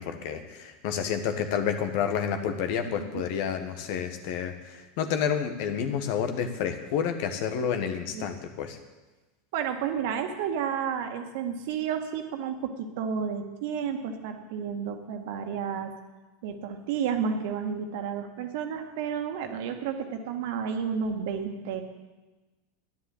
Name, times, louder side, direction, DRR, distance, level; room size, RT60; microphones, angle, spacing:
voice 1, 0.0-8.8, left 7 dB, 55° left, 7 dB, 1.6 m, -29 dB
voice 2, 9.5-15.9 16.4-21.8, right 7 dB, 60° right, 5 dB, 1.9 m, -31 dB
11.0 x 10.5 x 8.0 m, 1.2 s
figure-of-eight pair, 85°, 0 cm